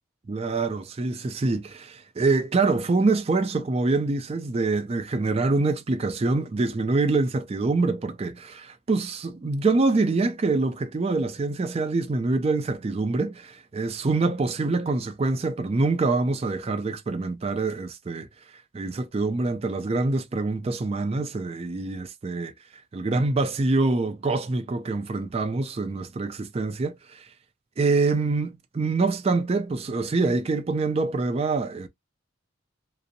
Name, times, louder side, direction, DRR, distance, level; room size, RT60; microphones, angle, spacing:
voice 1, 0.3-18.3 18.7-22.5 22.9-27.2 27.8-31.9, right 3 dB, 30° right, 0.3 m, -25 dB
2.5 x 2.0 x 2.5 m
head